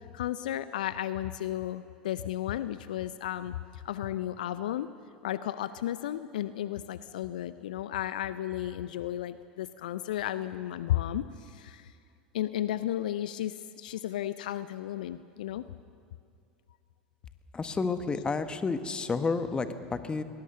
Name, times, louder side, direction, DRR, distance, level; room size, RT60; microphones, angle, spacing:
voice 1, 0.1-4.9 5.2-11.9 12.3-15.7, left 12 dB, 65° left, 14 dB, 0.6 m, -33 dB
voice 2, 17.5-20.2, left 4 dB, 20° left, 10 dB, 1.4 m, -30 dB
22.5 x 20.0 x 6.7 m, 2.3 s
figure-of-eight pair, 80°, 5 cm